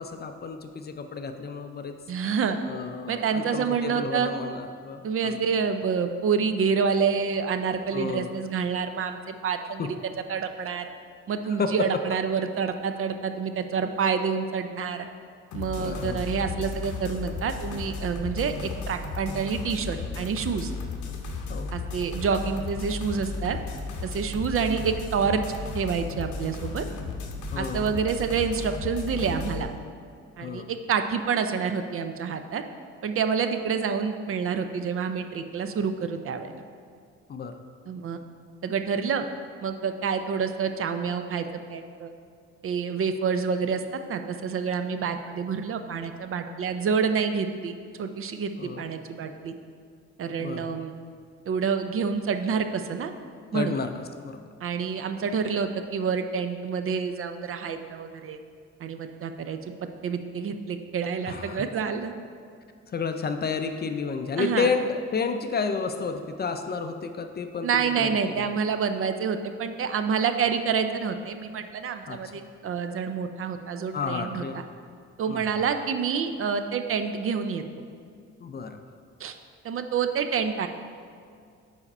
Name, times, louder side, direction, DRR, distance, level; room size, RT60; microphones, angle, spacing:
voice 1, 0.0-2.0 2.7-5.4 7.9-8.4 9.8-9.9 11.5-11.8 15.8-16.3 19.3-19.4 21.5-21.7 27.5-27.9 30.4-30.7 37.3-37.6 48.6-48.9 50.4-50.8 53.5-54.5 61.3-61.7 62.9-68.4 72.1-72.2 73.9-74.6 75.3-75.6 78.4-78.8, left 5 dB, 35° left, 7 dB, 0.4 m, -31 dB
voice 2, 2.1-2.6 3.1-4.3 5.0-9.9 10.3-10.9 11.3-15.1 15.5-20.7 21.7-23.6 24.0-25.4 25.7-26.8 27.6-29.7 30.4-32.6 33.0-36.5 37.9-38.2 38.6-39.2 39.6-42.1 42.6-43.8 44.1-48.5 48.8-49.5 50.2-50.9 51.5-53.1 53.5-53.7 54.6-58.4 58.8-59.6 60.0-62.1 64.4-64.7 67.6-74.4 75.2-77.6 79.2-79.3 79.6-80.7, right 6 dB, 45° right, 8 dB, 0.5 m, -28 dB
sound 1, 15.5-29.6, left 4 dB, 75° left, 0.8 m, -35 dB
4.8 x 4.2 x 5.3 m, 2.2 s
cardioid pair, 90°, 30 cm